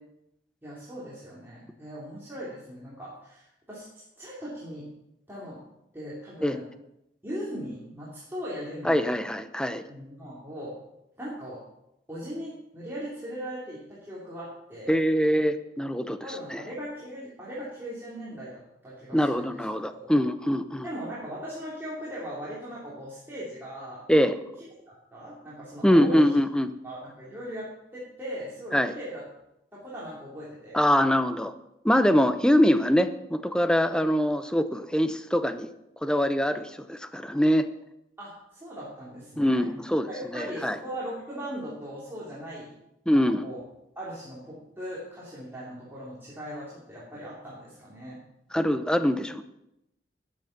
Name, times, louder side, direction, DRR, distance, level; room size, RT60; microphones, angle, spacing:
voice 1, 0.6-3.8 4.2-4.8 5.3-5.6 5.9-6.6 7.2-8.9 9.9-10.7 11.2-11.6 12.1-14.9 16.2-19.6 19.9-20.1 20.8-24.0 25.1-26.2 26.8-29.2 29.7-30.9 38.2-39.7 40.1-42.7 43.1-43.6 43.9-48.2, equal, 15° right, -8 dB, 3.1 m, -39 dB
voice 2, 8.8-9.8 14.9-16.2 16.5-16.6 19.1-20.9 24.1-24.4 25.8-26.7 28.7-28.9 30.7-31.5 31.8-35.7 36.0-37.7 39.4-40.8 43.1-43.5 48.5-49.4, equal, 5° left, 10 dB, 0.7 m, -23 dB
13.5 x 9.4 x 5.9 m, 0.85 s
head